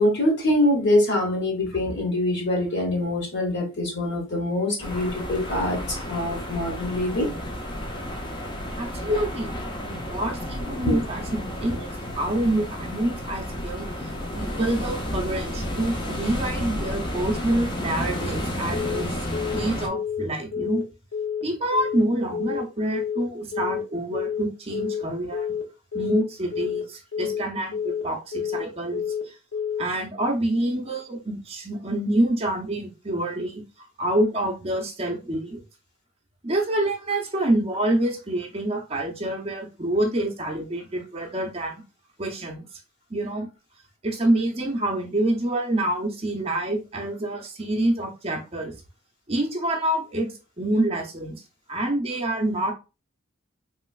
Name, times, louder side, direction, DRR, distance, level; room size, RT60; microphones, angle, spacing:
voice 1, 0.0-7.3 10.9-11.0, left 1 dB, 55° left, 1.1 m, -24 dB
sound 1, 4.8-19.9, equal, 20° left, 0.5 m, -32 dB
voice 2, 8.8-11.9 12.2-19.3 19.5-20.8 21.4-25.5 25.9-29.4 29.8-35.6 36.4-41.8 42.2-42.6 43.1-43.5 44.0-48.7 49.3-51.4 51.7-52.7, right 1 dB, 30° right, 0.6 m, -27 dB
Telephone, 18.7-19.0 19.3-19.6 19.9-20.2 20.5-20.8 21.1-21.4 21.7-22.0 22.3-22.6 22.9-23.2 23.5-23.8 24.1-24.4 24.7-25.0 25.3-25.6 25.9-26.2 26.5-26.8 27.1-27.4 27.7-28.0 28.3-28.6 28.9-29.2 29.5-29.8, left 7 dB, 70° left, 0.7 m, -29 dB
3.1 x 3.0 x 2.3 m
head